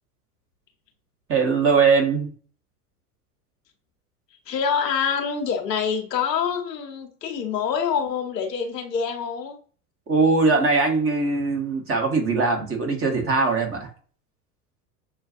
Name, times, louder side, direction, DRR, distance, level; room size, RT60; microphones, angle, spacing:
voice 1, 1.3-2.3 10.1-13.9, right 4 dB, 25° right, 3 dB, 1.5 m, -21 dB
voice 2, 4.5-9.6, left 7 dB, 80° left, 3 dB, 1.1 m, -26 dB
7.0 x 2.4 x 2.5 m, 0.42 s
hypercardioid pair, 90°, 48 cm